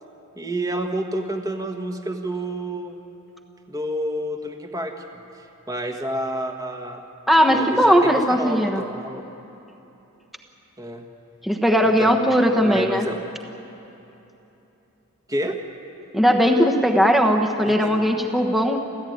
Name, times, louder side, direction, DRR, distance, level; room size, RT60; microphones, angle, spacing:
voice 1, 0.4-3.0 3.7-5.2 5.7-7.0 7.5-9.2 10.8-11.1 11.8-12.1 12.6-13.2 15.3-15.6 17.6-18.0, right 1 dB, 15° right, 4 dB, 1.4 m, -29 dB
voice 2, 7.3-8.8 11.4-13.1 16.1-18.8, equal, ahead, 2 dB, 1.1 m, -18 dB
29.5 x 13.5 x 9.4 m, 3.0 s
head